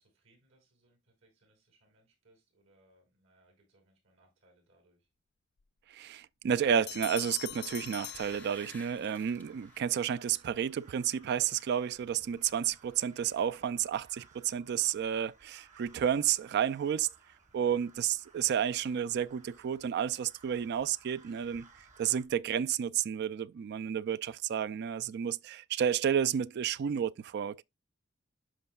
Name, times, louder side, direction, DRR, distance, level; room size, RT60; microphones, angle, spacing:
voice 1, 0.0-5.1 17.5-17.8, right 1 dB, 75° right, 5.8 m, -68 dB
voice 2, 5.9-17.1 17.5-21.7 22.0-27.6, right 8 dB, 55° right, 0.3 m, -31 dB
sound 1, 6.6-22.3, right 4 dB, 35° right, 1.3 m, -61 dB
Bell, 6.9-9.1, left 16 dB, 50° left, 0.3 m, -43 dB
sound 2, 7.8-10.1 10.6-10.8 11.1-11.8 12.1-12.2, left 2 dB, 10° left, 0.6 m, -54 dB
12.5 x 5.2 x 2.3 m
head